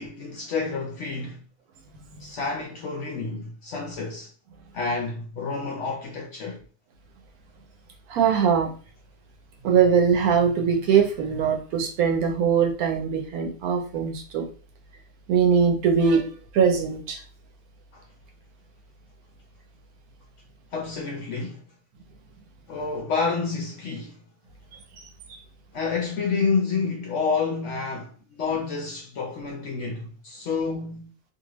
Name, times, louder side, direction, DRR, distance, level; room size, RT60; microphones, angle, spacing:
voice 1, 0.0-1.4 2.2-4.3 4.7-6.6 17.9-18.0 20.7-21.6 22.7-24.2 25.7-31.1, left 4 dB, 65° left, 0.7 m, -29 dB
voice 2, 8.1-8.7 9.6-14.5 15.3-17.2 25.0-25.1, right 6 dB, 70° right, 1.1 m, -22 dB
2.7 x 2.5 x 2.9 m
omnidirectional pair, 1.7 m